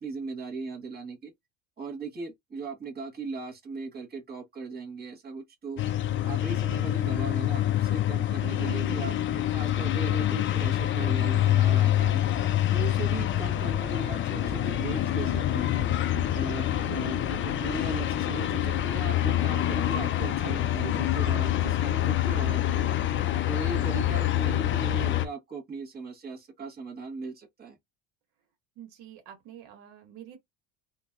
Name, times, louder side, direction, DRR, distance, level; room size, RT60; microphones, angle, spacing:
voice 1, 0.0-1.3 1.8-5.8 6.2-12.3 12.7-15.9 16.3-22.9 23.5-27.8, right 4 dB, 25° right, 1.4 m, -38 dB
sound 1, 5.8-25.3, left 12 dB, 35° left, 0.4 m, -26 dB
voice 2, 28.8-30.4, right 10 dB, 80° right, 1.5 m, -47 dB
2.9 x 2.6 x 2.3 m
cardioid pair, 120°, 35 cm